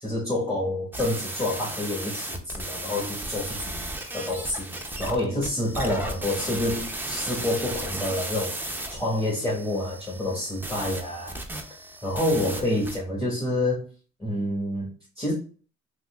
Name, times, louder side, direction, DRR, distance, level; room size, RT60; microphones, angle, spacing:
voice 1, 0.0-11.4 12.0-13.8 14.2-15.3, left 1 dB, 10° left, -5 dB, 1.2 m, -28 dB
sound 1, 0.9-13.0, right 1 dB, 5° right, 0.5 m, -35 dB
3.6 x 2.8 x 2.3 m, 0.40 s
cardioid pair, 90°, 30 cm